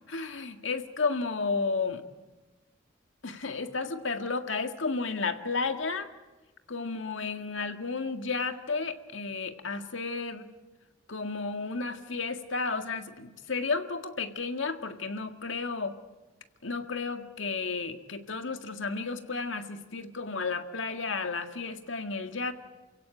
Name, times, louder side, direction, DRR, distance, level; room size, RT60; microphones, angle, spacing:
voice 1, 0.1-2.0 3.2-6.1 6.7-10.5 11.1-15.9 16.6-22.5, left 4 dB, 85° left, 7 dB, 1.9 m, -32 dB
28.5 x 16.5 x 9.0 m, 1.1 s
head